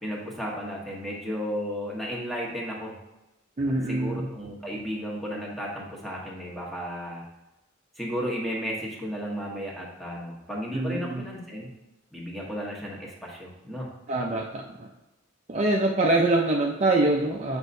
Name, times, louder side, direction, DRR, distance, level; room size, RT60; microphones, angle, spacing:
voice 1, 0.0-2.9 3.6-7.2 8.0-11.7 12.1-13.9, equal, ahead, -4 dB, 1.3 m, -34 dB
voice 2, 3.6-4.3 10.7-11.2 14.1-14.9 15.5-17.6, right 2 dB, 35° right, -1 dB, 0.5 m, -24 dB
8.1 x 5.2 x 2.6 m, 0.99 s
head